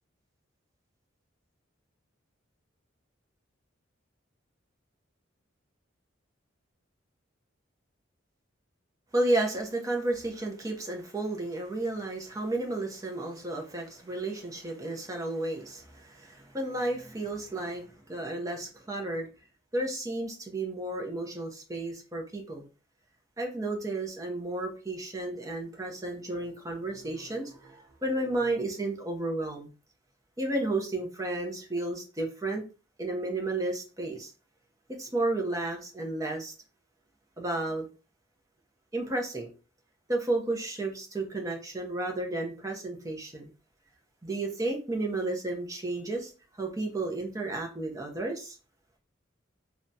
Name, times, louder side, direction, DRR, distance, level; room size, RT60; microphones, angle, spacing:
voice 1, 9.1-19.3 19.7-22.6 23.4-29.7 30.4-32.6 33.0-34.3 35.0-36.5 37.4-37.9 38.9-39.5 40.1-43.5 44.2-46.3 46.6-48.6, right 2 dB, 15° right, 0.6 m, -32 dB
2.9 x 2.2 x 2.6 m
head